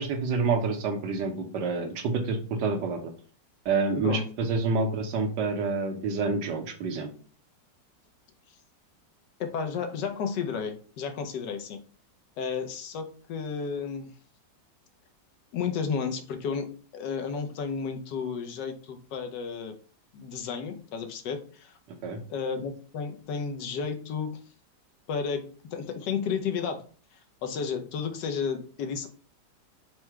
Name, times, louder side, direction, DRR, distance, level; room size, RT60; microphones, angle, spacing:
voice 1, 0.0-3.1 3.6-7.1 22.0-22.2, right 4 dB, 75° right, 5 dB, 1.4 m, -28 dB
voice 2, 9.4-11.8 12.4-14.1 15.5-19.8 20.1-21.7 22.3-24.4 25.1-26.8 27.4-29.1, left 6 dB, 75° left, 5 dB, 1.3 m, -32 dB
4.7 x 2.1 x 4.5 m, 0.40 s
omnidirectional pair, 1.9 m